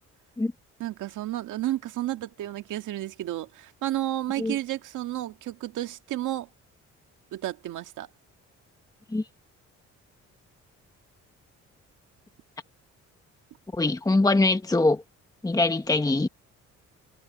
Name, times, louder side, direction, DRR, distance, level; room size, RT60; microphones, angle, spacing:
voice 1, 0.8-6.5 7.3-8.1, right 14 dB, 85° right, 1.9 m, -32 dB
voice 2, 13.7-15.0 15.4-16.3, left 2 dB, 10° left, 1.1 m, -23 dB
cardioid pair, 90°, 30 cm